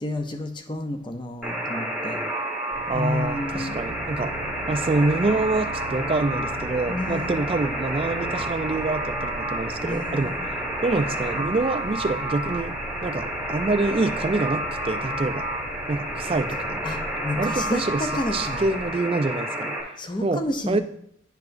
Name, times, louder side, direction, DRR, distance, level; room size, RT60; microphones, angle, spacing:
voice 1, 0.0-2.2 2.9-3.8 6.9-7.4 9.8-10.4 16.3-16.4 16.8-18.6 20.0-20.8, left 1 dB, 25° left, 6 dB, 0.5 m, -30 dB
Alarm, 1.4-19.8, right 1 dB, 5° right, 1.4 m, -30 dB
sound 1, 2.7-18.9, right 2 dB, 70° left, 2.6 m, -40 dB
voice 2, 2.9-4.4 4.7-10.4 10.8-12.7 13.0-15.5 15.9-16.8 17.4-19.8 20.2-20.8, right 3 dB, 30° right, 10 dB, 0.3 m, -26 dB
10.5 x 4.8 x 2.5 m, 0.71 s
head